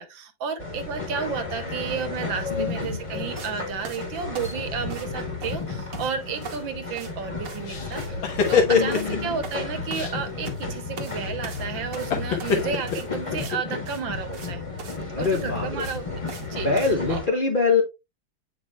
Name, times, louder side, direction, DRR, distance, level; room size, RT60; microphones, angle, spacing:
voice 1, 0.0-8.2 8.5-14.6 15.2-16.1 16.4-17.2, right 6 dB, 75° right, 1.7 m, -32 dB
sound 1, 0.6-17.3, left 3 dB, 15° left, 1.5 m, -33 dB
voice 2, 2.5-3.0 8.7-9.4 15.1-15.8 16.5-17.8, left 4 dB, 35° left, 0.8 m, -24 dB
sound 2, 3.4-3.5 3.8-5.2 5.4-6.1 6.4-6.7 7.0-7.1 7.5-7.7 7.9-8.1 8.4-8.6 8.9-9.1 9.4-10.6 11.0-11.2 11.4-13.6 13.9-14.0 14.3-14.5 14.8-15.0 15.2-16.5 16.8-17.0, right 5 dB, 50° right, 1.4 m, -41 dB
sound 3, 7.7-9.3 9.9-10.1 12.1-13.8, left 6 dB, 80° left, 2.1 m, -24 dB
8.2 x 5.1 x 2.3 m
omnidirectional pair, 2.2 m